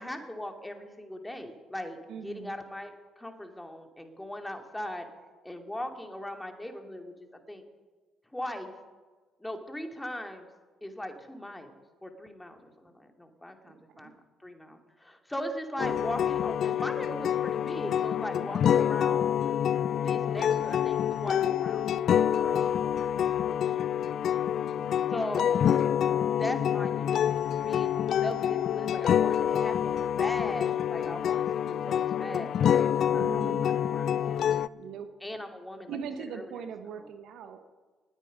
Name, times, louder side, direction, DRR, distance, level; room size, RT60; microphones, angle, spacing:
voice 1, 0.0-5.1 5.4-7.1 7.5-7.6 8.3-8.7 9.4-10.5 10.8-11.7 12.0-19.3 19.9-22.7 25.1-25.6 26.4-34.1 35.2-36.0 36.3-36.5 36.9-37.1, left 1 dB, 10° left, 4 dB, 2.4 m, -39 dB
voice 2, 2.1-2.5 13.6-14.1 33.1-33.7 34.7-35.1 35.9-37.6, right 7 dB, 65° right, 9 dB, 1.1 m, -40 dB
sound 1, 15.8-34.7, left 9 dB, 55° left, 0.4 m, -27 dB
19.5 x 9.1 x 5.3 m, 1.4 s
hypercardioid pair, 50°, 0 cm